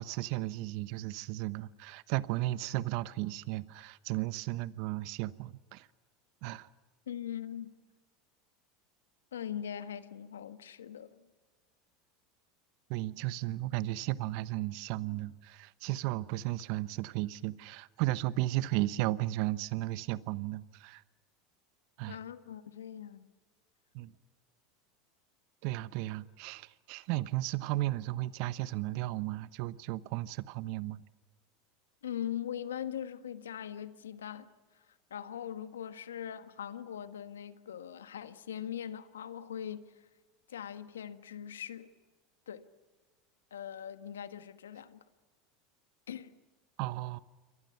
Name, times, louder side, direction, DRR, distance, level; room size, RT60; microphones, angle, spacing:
voice 1, 0.0-5.9 6.4-6.7 12.9-21.0 22.0-22.2 23.9-24.1 25.6-31.0 46.8-47.2, right 17 dB, 60° right, 1.0 m, -34 dB
voice 2, 7.1-7.7 9.3-11.2 22.1-23.3 32.0-34.5 35.1-39.8 40.5-41.9 42.5-42.7 43.5-45.0 46.1-46.4, left 9 dB, 90° left, 1.4 m, -41 dB
28.5 x 24.0 x 5.8 m
hypercardioid pair, 90°, 0 cm